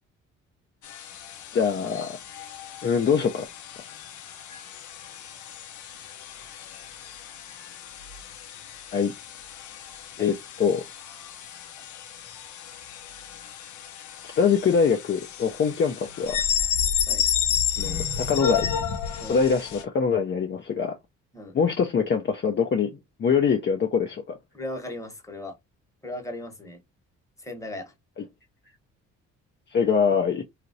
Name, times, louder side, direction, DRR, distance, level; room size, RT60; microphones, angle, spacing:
sound 1, 0.8-19.8, left 8 dB, 75° left, 0.7 m, -32 dB
voice 1, 1.5-2.2 2.8-3.5 8.9-9.1 10.2-10.8 14.2-16.4 17.8-18.7 19.3-21.0 21.5-24.4 29.7-30.4, left 6 dB, 40° left, 0.5 m, -23 dB
voice 2, 24.5-25.6 26.0-26.8 27.4-27.9, left 1 dB, 10° left, 1.0 m, -37 dB
3.0 x 2.4 x 2.6 m
cardioid pair, 90°, 30 cm